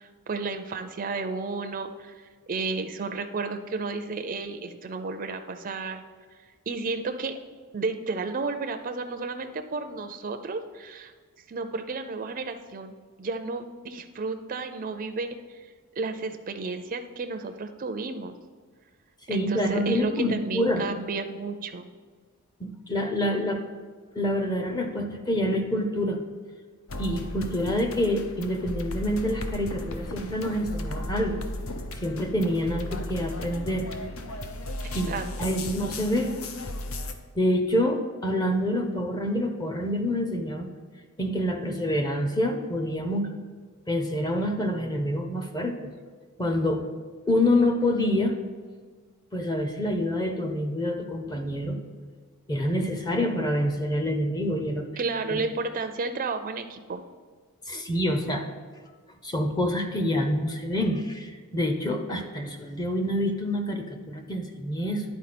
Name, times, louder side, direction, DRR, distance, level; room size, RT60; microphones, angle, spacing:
voice 1, 0.0-6.0 6.7-7.4 7.7-11.1 11.5-12.9 13.2-15.4 16.0-18.4 19.3-21.9 34.8-35.5 55.0-57.0, right 3 dB, 40° right, 6 dB, 0.4 m, -32 dB
voice 2, 19.3-20.9 22.6-23.6 24.1-26.2 27.0-31.4 32.0-33.9 34.9-35.1 35.4-36.4 37.4-40.7 41.2-43.3 43.9-45.9 46.4-46.9 47.3-48.4 49.3-51.8 52.5-54.9 55.3-55.4 57.7-58.4 59.2-65.0, left 1 dB, 20° left, 5 dB, 0.6 m, -27 dB
sound 1, 26.9-37.1, left 1 dB, 65° left, 0.6 m, -35 dB
10.5 x 4.6 x 4.2 m, 1.5 s
head